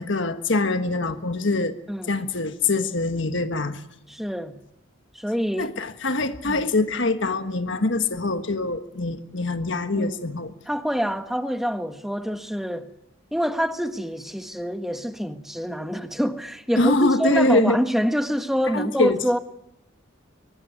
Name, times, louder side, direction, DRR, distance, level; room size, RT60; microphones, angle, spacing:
voice 1, 0.0-1.7 2.1-3.8 5.6-10.5 16.8-17.8 18.7-19.2, left 2 dB, 60° left, 1.4 m, -24 dB
voice 2, 4.1-4.5 5.1-5.7 6.4-6.7 9.9-10.3 10.6-12.9 13.3-19.4, equal, ahead, 1.4 m, -26 dB
24.0 x 19.5 x 9.4 m
head